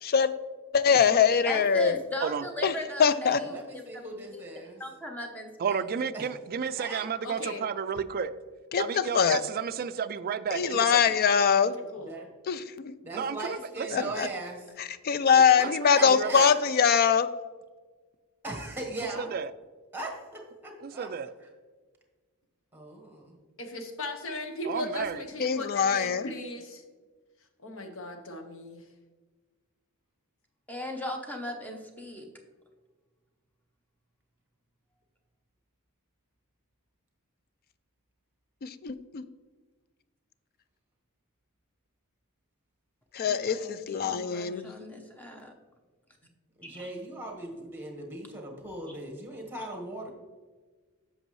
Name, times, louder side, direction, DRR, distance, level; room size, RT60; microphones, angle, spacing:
voice 1, 0.0-0.3 0.7-2.0 2.6-2.7 3.0-3.4 8.7-8.8 9.1-9.4 10.5-11.8 12.5-13.0 13.9-14.3 14.8-17.3 25.4-26.3 38.6-39.2 43.1-44.7, left 6 dB, 40° left, 14 dB, 0.3 m, -23 dB
voice 2, 1.5-3.8 4.3-4.4 4.8-5.5 30.7-32.3 43.2-45.5 46.6-46.9 48.9-49.0, equal, 5° left, 3 dB, 0.8 m, -38 dB
voice 3, 3.5-4.8 6.1-6.2 6.8-7.0 12.1-12.3 13.0-14.6 15.6-15.7 15.9-16.5 18.4-19.3 19.9-20.2 20.6-21.1 22.7-23.4 46.6-50.1, right 2 dB, 10° right, 1 dB, 1.4 m, -38 dB
voice 4, 5.6-8.3 8.8-11.0 13.1-14.1 15.6-16.5 19.2-19.5 20.8-21.3 24.6-25.2, right 7 dB, 40° right, 12 dB, 0.3 m, -32 dB
voice 5, 7.2-7.6 11.9-12.2 23.6-26.8 27.6-28.8, left 1 dB, 60° left, 5 dB, 0.9 m, -37 dB
7.9 x 6.1 x 3.2 m, 1.4 s
head